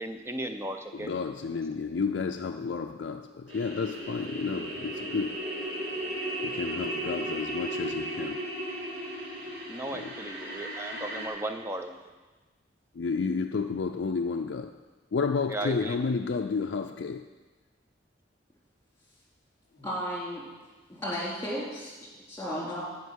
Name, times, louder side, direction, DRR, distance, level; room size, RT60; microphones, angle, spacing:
voice 1, 0.0-1.1 9.7-12.0 15.5-16.0, right 1 dB, 15° right, 6 dB, 0.6 m, -36 dB
voice 2, 0.9-5.4 6.4-8.4 9.9-10.1 13.0-14.8 15.1-17.3, left 5 dB, 65° left, 3 dB, 0.4 m, -31 dB
sound 1, 3.5-11.3, right 1 dB, 70° right, 2.6 m, -35 dB
voice 3, 19.8-20.4 20.9-21.9 22.3-22.8, equal, 15° left, -5 dB, 3.0 m, -34 dB
13.5 x 5.2 x 6.3 m, 1.2 s
head